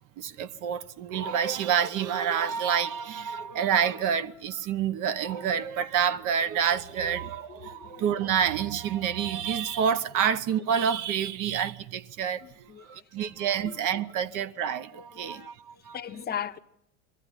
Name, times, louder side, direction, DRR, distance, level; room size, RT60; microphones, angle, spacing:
voice 1, 0.2-16.0, right 8 dB, 50° right, 1.0 m, -28 dB
voice 2, 7.5-8.1 12.4-13.0 13.6-14.0 15.1-15.5 15.9-16.6, left 9 dB, 25° left, 0.8 m, -39 dB
22.0 x 14.5 x 9.9 m
supercardioid pair, 105°, 40 cm